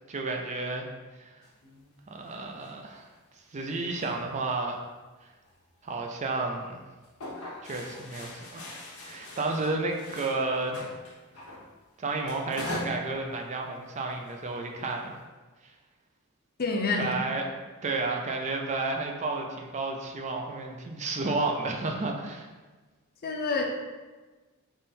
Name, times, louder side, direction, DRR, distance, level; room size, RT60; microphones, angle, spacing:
voice 1, 0.1-0.9 1.2-1.4 2.1-3.1 3.5-4.8 5.8-6.8 7.6-8.6 9.0-10.8 12.0-15.2 15.6-15.7 17.0-17.5 17.8-22.5, right 3 dB, 35° right, 2 dB, 0.4 m, -31 dB
sound 1, 1.4-3.2 3.4-4.9 5.4-5.7 6.1-6.2 6.6-6.8 7.0-11.7 12.0-13.0 13.3-13.5 13.9-15.2, left 1 dB, 75° left, 0.9 m, -42 dB
voice 2, 16.6-17.1 23.2-23.6, left 3 dB, 45° left, 1 dB, 0.6 m, -27 dB
3.7 x 3.2 x 4.2 m, 1.3 s
head